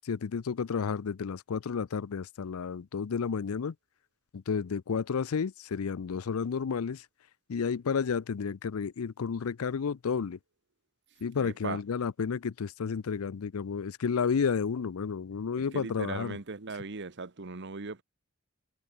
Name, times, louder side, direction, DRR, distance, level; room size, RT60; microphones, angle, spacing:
voice 1, 0.1-3.7 4.3-7.0 7.5-10.4 11.2-16.4, left 6 dB, 80° left, 0.5 m, -31 dB
voice 2, 11.4-11.8 15.6-18.0, right 3 dB, 55° right, 1.2 m, -38 dB
head